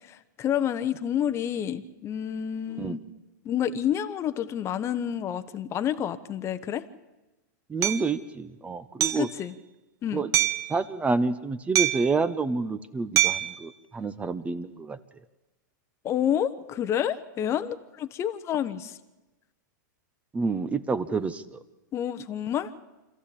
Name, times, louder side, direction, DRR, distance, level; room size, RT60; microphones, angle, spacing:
voice 1, 0.1-3.0 3.4-6.8 9.2-9.5 10.0-10.2 16.0-19.0 21.1-21.2 21.9-22.8, left 9 dB, 25° left, 11 dB, 1.0 m, -29 dB
voice 2, 7.7-9.3 10.1-10.3 10.7-15.0 20.3-21.6, right 4 dB, 15° right, 14 dB, 0.9 m, -28 dB
Hammer, 7.8-8.0 9.0-9.3 10.3-10.7 11.8-12.2 13.2-13.5, right 12 dB, 35° right, 1.3 m, -24 dB
26.0 x 14.5 x 8.7 m, 1.1 s
hypercardioid pair, 130°, 10 cm